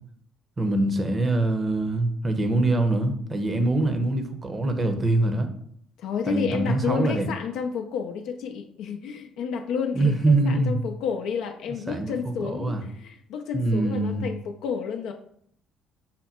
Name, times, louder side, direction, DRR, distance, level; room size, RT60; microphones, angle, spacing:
voice 1, 0.6-5.5 6.3-7.3 9.9-10.8 11.9-12.8 13.5-14.2, right 2 dB, 30° right, 7 dB, 0.8 m, -24 dB
voice 2, 6.0-15.1, left 6 dB, 75° left, 4 dB, 0.4 m, -30 dB
5.7 x 2.1 x 4.2 m, 0.66 s
supercardioid pair, 75°, 0 cm